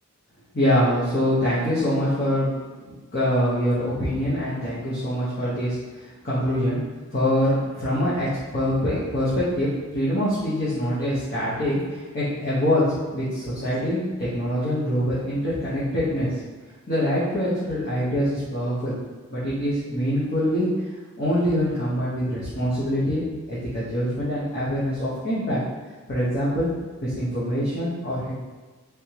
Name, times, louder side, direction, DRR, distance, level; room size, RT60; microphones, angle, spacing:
voice 1, 0.5-2.5 3.1-6.8 7.1-8.3 8.5-12.9 13.1-16.3 16.9-18.9 19.3-20.7 21.2-25.6 26.1-26.7 27.0-28.3, equal, 45° left, -11 dB, 0.9 m, -24 dB
3.4 x 3.3 x 2.9 m, 1.3 s
head